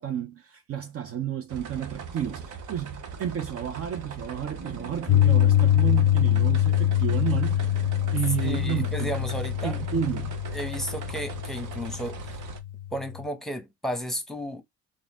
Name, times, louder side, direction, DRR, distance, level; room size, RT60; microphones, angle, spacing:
voice 1, 0.0-9.1 9.6-10.4, right 9 dB, 45° right, 0.6 m, -32 dB
sound 1, 1.5-12.6, right 6 dB, 65° right, 1.0 m, -40 dB
sound 2, 4.6-10.1, right 4 dB, 25° right, 1.6 m, -45 dB
Piano, 5.1-13.2, left 12 dB, 65° left, 0.5 m, -24 dB
voice 2, 8.4-9.8 10.5-12.4 12.9-14.6, equal, ahead, 1.0 m, -33 dB
3.9 x 2.6 x 3.6 m
cardioid pair, 100°, 33 cm